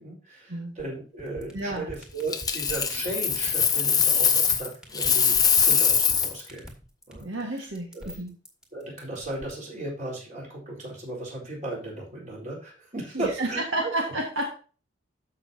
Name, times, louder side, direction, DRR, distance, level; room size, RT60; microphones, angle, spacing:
voice 1, 0.0-5.3 5.6-6.7 7.1-7.6 7.9-8.1 8.7-13.9, right 2 dB, 40° right, -3 dB, 4.3 m, -36 dB
sound 1, 1.2-9.5, equal, 5° right, 2.0 m, -42 dB
voice 2, 1.5-1.9 7.2-8.3 13.1-14.5, right 1 dB, 75° right, 0 dB, 1.7 m, -31 dB
Coin (dropping), 2.3-4.7 4.9-6.4 9.2-9.4, left 7 dB, 20° left, 0.9 m, -22 dB
14.0 x 5.7 x 2.8 m, 0.36 s
head